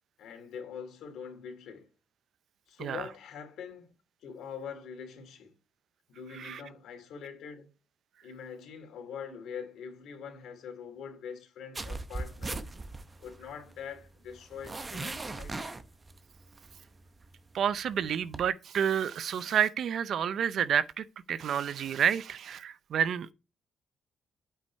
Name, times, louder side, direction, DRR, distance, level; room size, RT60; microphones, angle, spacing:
voice 1, 0.2-1.9 2.7-3.9 4.2-5.5 6.1-7.7 8.2-12.6 13.2-15.7, left 7 dB, 80° left, 2.8 m, -43 dB
sound 1, 11.8-18.5, right 3 dB, 20° right, 0.7 m, -40 dB
voice 2, 17.5-23.3, right 8 dB, 60° right, 0.5 m, -29 dB
8.4 x 5.4 x 4.6 m
cardioid pair, 155°, 0 cm